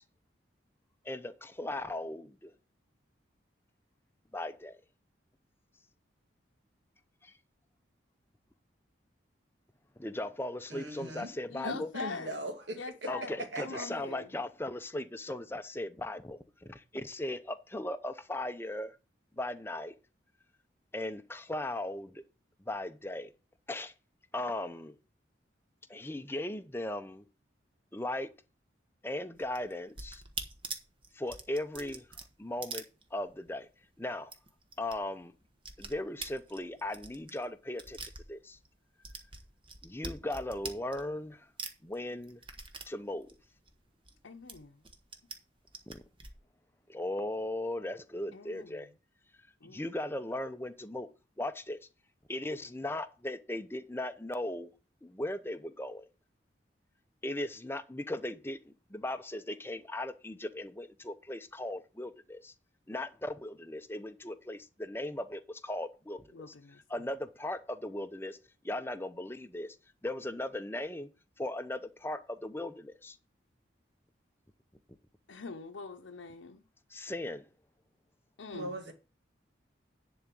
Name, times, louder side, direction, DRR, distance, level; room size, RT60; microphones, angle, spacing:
voice 1, 1.0-2.5 4.3-4.8 7.2-7.3 10.0-11.9 13.1-19.0 19.4-20.0 20.9-22.2 22.7-23.3 23.7-23.9 24.3-25.0 25.9-27.2 27.9-28.3 29.0-30.2 31.1-32.1 32.4-32.8 33.1-33.7 34.0-34.3 34.8-35.3 35.8-38.6 39.8-41.5 41.8-42.4 42.9-43.3 45.9-46.0 46.9-48.9 49.6-51.1 51.4-51.8 52.3-54.7 55.0-56.1 57.2-62.5 62.9-66.5 66.9-68.4 68.6-69.8 70.0-71.1 71.4-73.2 76.9-77.4, left 1 dB, 10° left, 0.6 m, -38 dB
voice 2, 10.7-11.3 11.6-13.1 13.4-13.9 78.5-78.9, right 1 dB, 70° right, 2.1 m, -39 dB
voice 3, 11.5-12.4 12.8-14.3 44.2-44.8 48.3-48.9 49.6-49.9 66.3-66.8 75.3-76.6 78.4-78.7, left 4 dB, 85° left, 0.7 m, -43 dB
sound 1, 29.4-33.6 33.8-33.9 34.2-35.0 35.2-38.7 39.0-41.3 41.6-44.2 44.5-45.4 45.7-46.3, right 4 dB, 25° right, 1.2 m, -44 dB
10.5 x 4.0 x 7.5 m
head